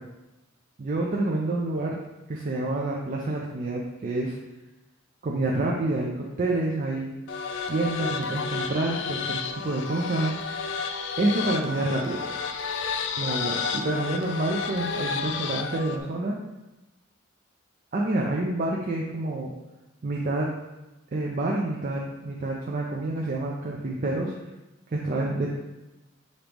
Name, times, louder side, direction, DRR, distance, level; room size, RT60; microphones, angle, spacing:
voice 1, 0.8-2.0 2.3-4.4 5.2-7.1 7.7-10.3 11.2-12.2 13.2-16.4 17.9-19.5 20.0-20.5 21.1-24.3 24.9-25.5, right 2 dB, 40° right, -2 dB, 0.4 m, -28 dB
sound 1, 7.3-16.0, left 5 dB, 55° left, 0.3 m, -31 dB
5.2 x 2.9 x 3.4 m, 1.0 s
head